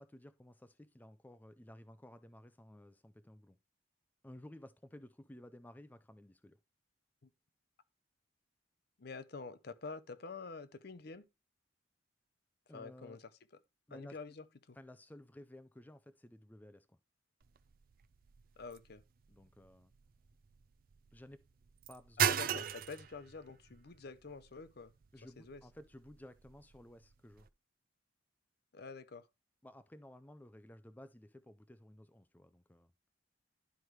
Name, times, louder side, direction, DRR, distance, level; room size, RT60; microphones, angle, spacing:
voice 1, 0.0-3.6 4.2-6.6 12.7-13.2 13.9-14.2 14.7-17.0 19.3-19.9 21.1-21.4 21.9-22.7 25.1-27.5 29.6-32.9, left 1 dB, 10° left, 0.4 m, -55 dB
voice 2, 9.0-11.3 12.7-13.3 13.9-14.8 18.6-19.0 22.2-24.9 25.4-25.6 28.7-29.3, left 4 dB, 55° left, 0.6 m, -47 dB
sound 1, 17.4-27.5, right 9 dB, 50° right, 0.4 m, -40 dB
11.5 x 4.7 x 3.2 m
head